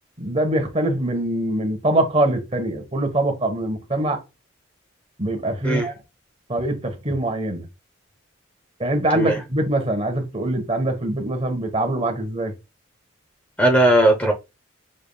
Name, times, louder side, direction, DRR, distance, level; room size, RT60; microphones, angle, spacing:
voice 1, 0.2-4.2 5.2-5.9 6.5-7.6 8.8-12.5, right 1 dB, 30° right, 1.1 m, -23 dB
voice 2, 13.6-14.3, right 1 dB, 5° left, 0.6 m, -17 dB
6.5 x 3.5 x 2.2 m
head